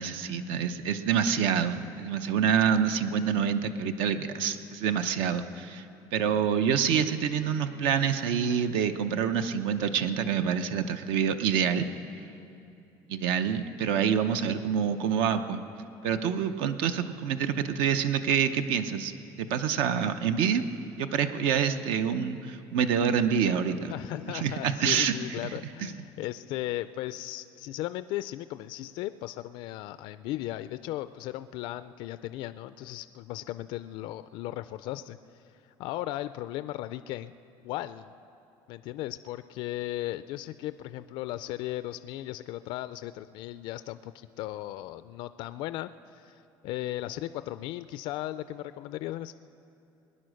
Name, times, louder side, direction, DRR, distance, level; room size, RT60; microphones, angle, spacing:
voice 1, 0.0-5.9 6.1-11.9 13.1-15.6 16.0-19.1 19.4-20.6 21.0-23.9 24.3-25.1, right 7 dB, 75° right, 9 dB, 0.7 m, -27 dB
voice 2, 23.9-37.3 37.6-38.1 38.7-49.3, left 15 dB, 60° left, 13 dB, 0.4 m, -36 dB
21.0 x 10.0 x 6.4 m, 2.8 s
cardioid pair, 160°, 9 cm